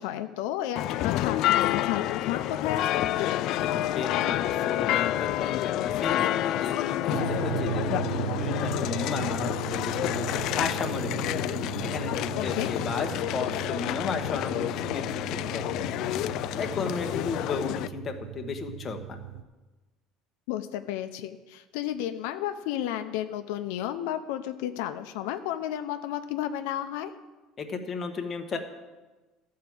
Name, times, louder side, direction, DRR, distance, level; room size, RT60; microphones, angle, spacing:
voice 1, 0.0-3.0 12.3-12.7 20.5-27.1, left 12 dB, 85° left, 8 dB, 0.6 m, -32 dB
sound 1, 0.8-17.9, left 13 dB, 50° left, 0.3 m, -29 dB
voice 2, 3.6-10.2 10.6-11.5 11.9-15.6 16.0-16.1 16.6-19.2 27.6-28.6, left 5 dB, 25° left, 4 dB, 1.0 m, -34 dB
sound 2, 7.1-19.4, right 11 dB, 75° right, 0.6 m, -37 dB
13.5 x 4.7 x 7.8 m, 1.2 s
cardioid pair, 170°, 0 cm